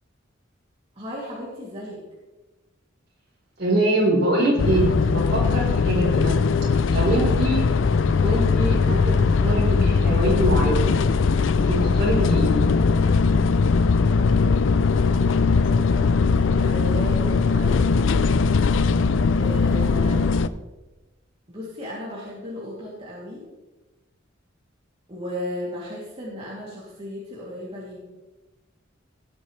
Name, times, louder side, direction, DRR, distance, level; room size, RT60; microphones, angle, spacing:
voice 1, 1.0-2.0 16.5-18.1 19.4-20.2 21.5-23.5 25.1-28.0, left 1 dB, 30° right, -7 dB, 2.8 m, -35 dB
voice 2, 3.6-6.3 6.9-7.6 8.2-11.0 11.7-12.7, right 1 dB, 55° right, -3 dB, 4.3 m, -24 dB
sound 1, 4.6-20.5, left 4 dB, 70° left, 0.4 m, -20 dB
17.5 x 8.6 x 3.3 m, 1.1 s
head